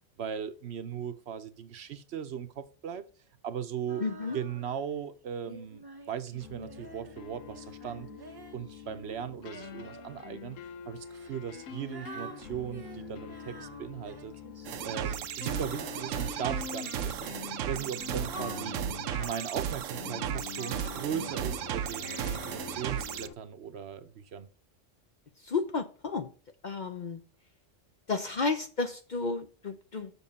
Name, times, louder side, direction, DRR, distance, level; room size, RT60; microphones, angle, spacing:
voice 1, 0.2-3.0 3.4-4.0 4.3-8.1 8.5-10.6 10.9-14.4 14.8-18.8 19.1-24.5, right 8 dB, 65° right, 0.9 m, -38 dB
Female singing, 3.9-4.9 5.5-10.3 11.1-16.6 17.4-20.5 21.2-22.3, right 4 dB, 25° right, 0.6 m, -48 dB
voice 2, 4.0-4.4 25.4-26.3 26.6-27.2 28.1-30.1, left 4 dB, 50° left, 0.6 m, -32 dB
sound 1, 6.4-23.3, left 8 dB, 90° left, 1.1 m, -45 dB
sound 2, 14.7-23.3, right 9 dB, 85° right, 1.0 m, -35 dB
7.1 x 6.6 x 4.1 m
omnidirectional pair, 1.3 m